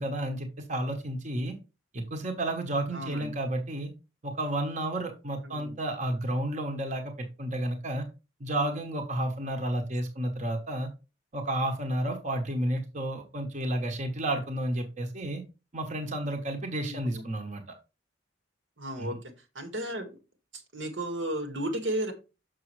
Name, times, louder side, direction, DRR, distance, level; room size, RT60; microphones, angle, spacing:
voice 1, 0.0-1.6 1.9-3.9 4.2-8.1 8.4-10.9 11.3-15.4 15.7-17.6 19.0-19.2, right 1 dB, 40° right, 4 dB, 1.1 m, -31 dB
voice 2, 2.9-3.3 5.4-5.8 16.8-17.2 18.8-20.2 20.5-22.1, right 1 dB, 85° right, 6 dB, 1.9 m, -34 dB
6.8 x 6.2 x 3.2 m, 0.29 s
head